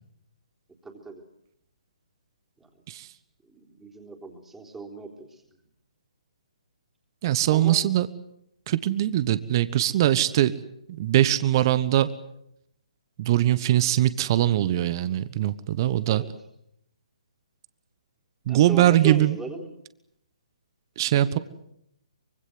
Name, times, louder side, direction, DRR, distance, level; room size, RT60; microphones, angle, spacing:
voice 1, 0.8-1.2 3.5-5.4 7.5-7.9 16.1-16.3 18.5-19.7 21.2-21.4, right 2 dB, 5° right, 2 dB, 3.6 m, -38 dB
voice 2, 7.2-8.1 8.7-10.5 10.9-12.1 13.2-16.2 18.5-19.4 21.0-21.4, right 13 dB, 40° right, 15 dB, 1.2 m, -21 dB
25.0 x 23.5 x 7.9 m, 0.79 s
figure-of-eight pair, 135°, 4 cm